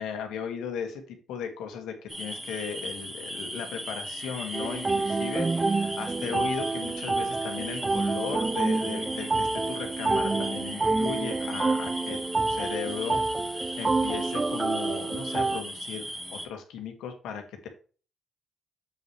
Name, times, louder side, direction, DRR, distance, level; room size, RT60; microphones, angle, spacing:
voice 1, 0.0-13.2 13.5-17.7, left 7 dB, 90° left, 5 dB, 1.8 m, -37 dB
sound 1, 2.1-16.5, equal, 5° right, 1.7 m, -38 dB
sound 2, 4.5-15.6, right 3 dB, 25° right, 0.3 m, -28 dB
7.7 x 5.5 x 3.2 m, 0.38 s
cardioid pair, 90°, 0 cm